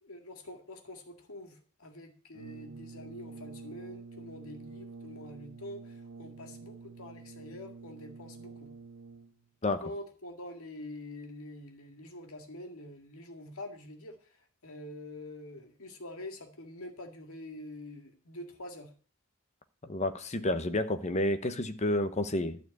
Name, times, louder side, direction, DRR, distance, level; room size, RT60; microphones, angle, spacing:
voice 1, 0.0-8.7 9.6-14.4 14.6-18.9 20.8-20.9, left 1 dB, 80° left, 5 dB, 2.0 m, -46 dB
Brass instrument, 2.3-9.5, right 4 dB, 75° right, 0.9 m, -48 dB
voice 2, 19.8-22.6, left 1 dB, 30° left, 10 dB, 0.9 m, -30 dB
12.0 x 4.5 x 8.3 m, 0.42 s
head